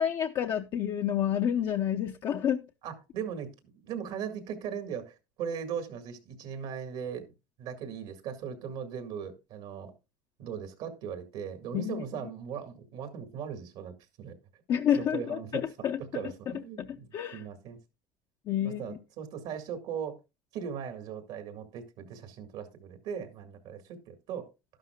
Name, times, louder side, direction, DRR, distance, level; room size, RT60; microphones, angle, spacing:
voice 1, 0.0-2.6 11.7-12.0 14.7-16.0 16.8-17.4 18.5-19.0, left 9 dB, 40° left, 0.7 m, -29 dB
voice 2, 2.8-3.5 3.8-7.3 7.6-9.9 10.4-14.3 14.9-15.7 16.0-17.8 18.6-20.2 20.5-24.5, right 7 dB, 65° right, 1.8 m, -38 dB
12.0 x 11.5 x 2.2 m
cardioid pair, 130°, 11 cm